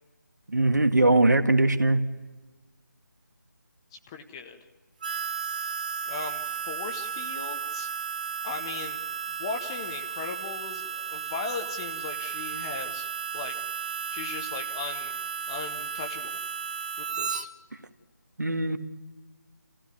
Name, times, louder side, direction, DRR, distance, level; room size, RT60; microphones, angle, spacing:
voice 1, 0.5-2.0 18.4-18.8, right 2 dB, 65° right, 8 dB, 1.7 m, -21 dB
voice 2, 3.9-4.6 6.1-7.9 8.4-9.0 9.4-13.1 13.3-13.5 14.1-15.2 15.5-16.4 17.0-17.5, left 4 dB, 15° left, 5 dB, 0.9 m, -38 dB
Harmonica, 5.0-17.4, right 7 dB, 25° right, 0.7 m, -34 dB
27.5 x 15.5 x 9.6 m, 1.3 s
figure-of-eight pair, 155°, 10 cm